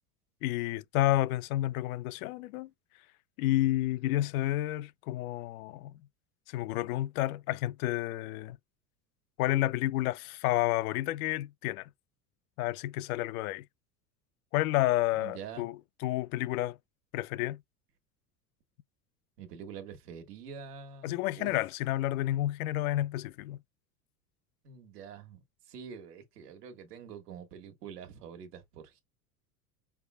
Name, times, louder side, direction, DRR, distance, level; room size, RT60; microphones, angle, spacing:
voice 1, 0.4-2.7 3.4-5.9 6.5-8.6 9.4-11.9 12.6-13.6 14.5-16.8 17.1-17.6 21.0-23.6, left 15 dB, 70° left, 0.5 m, -30 dB
voice 2, 15.2-15.7 19.4-21.5 24.6-25.4 25.7-29.0, right 7 dB, 80° right, 1.5 m, -46 dB
4.8 x 3.4 x 2.2 m
hypercardioid pair, 85°, 46 cm